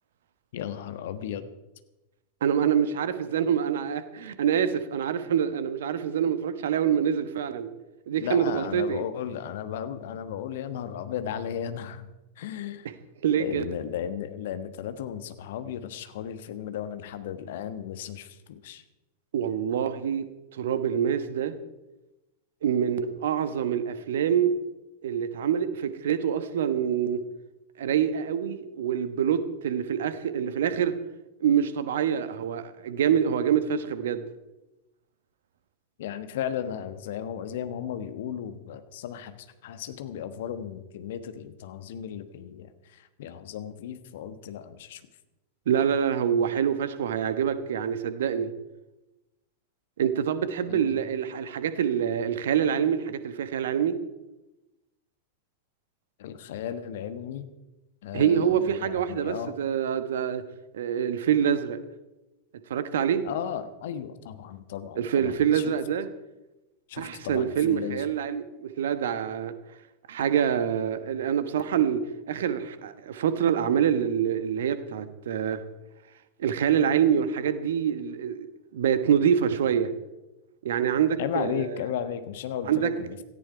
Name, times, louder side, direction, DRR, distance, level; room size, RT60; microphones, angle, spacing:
voice 1, 0.5-1.4 8.2-12.1 12.4-12.9 13.3-18.8 36.0-45.0 50.7-50.9 56.2-57.5 58.0-59.6 63.2-65.7 66.9-68.1 81.2-83.2, left 9 dB, 55° left, 10 dB, 1.3 m, -35 dB
voice 2, 2.4-7.7 8.1-9.0 13.2-13.7 19.3-20.3 20.5-21.6 22.6-24.5 25.0-27.2 27.8-31.0 31.4-34.3 45.7-48.5 50.0-54.0 58.1-60.4 60.7-61.8 62.7-63.3 65.0-66.1 67.0-69.5 70.1-75.6 76.4-78.5 78.7-79.9 80.6-81.8 82.6-82.9, right 8 dB, 60° right, 12 dB, 1.2 m, -26 dB
17.5 x 14.0 x 4.7 m, 1.0 s
figure-of-eight pair, 90°, 0 cm